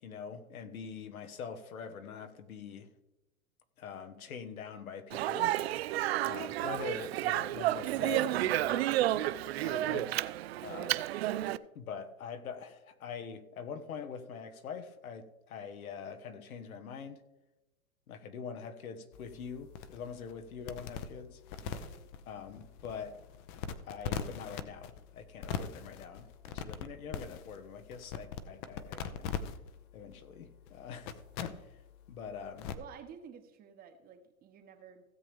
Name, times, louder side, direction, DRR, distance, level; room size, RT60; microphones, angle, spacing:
voice 1, 0.0-2.9 3.8-5.6 6.2-8.9 9.6-10.1 10.6-11.0 11.7-17.2 18.1-21.4 22.3-23.2 23.8-29.4 29.9-31.1 31.4-31.6 32.1-32.7, left 6 dB, 75° left, 1.4 m, -44 dB
Speech, 5.1-11.6, right 14 dB, 50° right, 0.4 m, -31 dB
sound 1, 19.1-32.7, left 7 dB, 35° left, 0.8 m, -43 dB
voice 2, 21.6-22.1 32.7-35.0, right 7 dB, 20° right, 1.0 m, -52 dB
16.5 x 7.3 x 3.5 m
hypercardioid pair, 130°, 42 cm